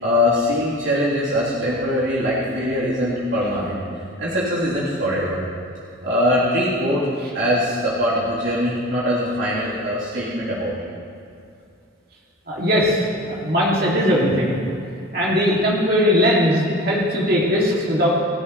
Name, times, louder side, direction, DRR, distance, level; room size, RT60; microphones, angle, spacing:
voice 1, 0.0-3.8 4.2-5.4 6.0-7.1 7.3-10.9, left 1 dB, 80° right, -9 dB, 3.3 m, -22 dB
voice 2, 12.5-14.5 15.1-18.1, equal, 50° right, -5 dB, 2.4 m, -19 dB
28.5 x 11.0 x 3.2 m, 2.5 s
head